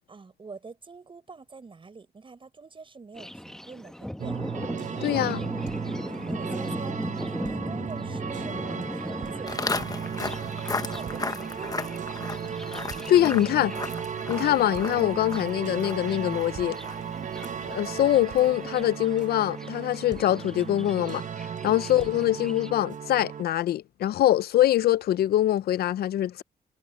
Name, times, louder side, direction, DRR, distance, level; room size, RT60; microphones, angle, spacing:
voice 1, 0.1-4.3 5.8-9.9 10.3-12.0 17.1-17.4 21.6-21.8, right 4 dB, 35° right, 6.1 m, -45 dB
Thunder, 3.1-22.7, equal, 5° left, 1.0 m, -39 dB
sound 1, 4.2-23.4, right 8 dB, 50° right, 1.0 m, -35 dB
voice 2, 5.0-5.4 13.1-13.7 14.3-16.8 17.7-21.2 21.6-26.4, left 13 dB, 80° left, 0.5 m, -23 dB
Walk footsteps, 9.5-18.7, left 3 dB, 25° left, 1.1 m, -36 dB
cardioid pair, 100°, 16 cm